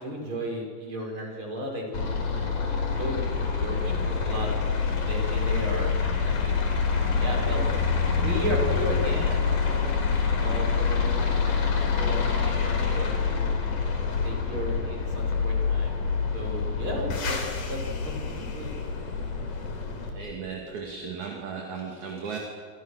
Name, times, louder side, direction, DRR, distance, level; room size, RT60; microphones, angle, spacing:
voice 1, 0.0-4.6 5.0-6.3 6.6-7.7 8.2-9.9 10.2-13.5 14.2-16.0 16.3-17.4 17.7-18.7, equal, 35° right, 0 dB, 6.3 m, -35 dB
sound 1, 1.9-20.1, left 5 dB, 70° left, 4.8 m, -26 dB
voice 2, 20.0-22.4, right 5 dB, 60° right, 0 dB, 3.8 m, -36 dB
27.5 x 26.5 x 6.6 m, 2.1 s
omnidirectional pair, 4.0 m